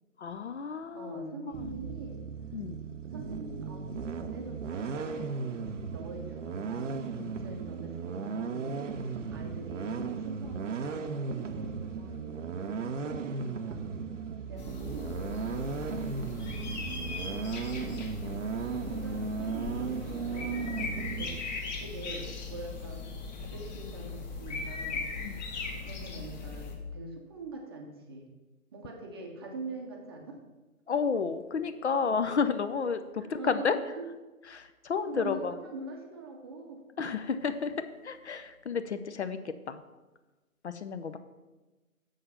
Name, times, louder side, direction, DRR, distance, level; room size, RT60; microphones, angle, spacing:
voice 1, 0.2-1.7 2.5-2.8 7.2-7.3 13.4-13.5 17.8-17.9 25.2-25.4 30.9-33.8 34.5-35.5 37.0-37.7 38.0-39.4 39.7-39.8 40.6-41.2, left 5 dB, 50° left, 10 dB, 0.6 m, -31 dB
voice 2, 0.9-2.3 3.0-13.2 13.6-14.1 14.5-17.3 18.4-23.0 23.4-25.1 25.7-28.3 28.7-30.4 33.2-34.1 35.0-36.8, right 3 dB, 15° right, 1 dB, 0.7 m, -44 dB
sound 1, 1.5-21.4, right 5 dB, 60° right, 0.7 m, -36 dB
sound 2, 14.6-26.8, left 4 dB, 30° left, 1.3 m, -39 dB
7.0 x 6.4 x 5.5 m, 1.2 s
figure-of-eight pair, 140°, 43 cm